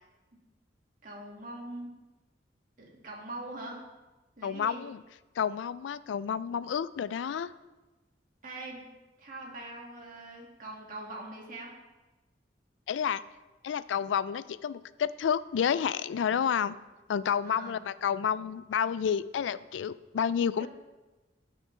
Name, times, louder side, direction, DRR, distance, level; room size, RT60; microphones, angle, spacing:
voice 1, 1.0-1.9 2.8-3.8 4.4-4.8 8.4-8.8 9.2-11.8 17.4-17.8 20.6-20.7, right 2 dB, 50° right, -2 dB, 2.1 m, -42 dB
voice 2, 4.4-5.0 5.4-7.5 12.9-13.2 13.6-16.8 17.1-20.7, left 7 dB, 85° left, 17 dB, 0.3 m, -30 dB
13.5 x 6.2 x 3.3 m, 1.1 s
head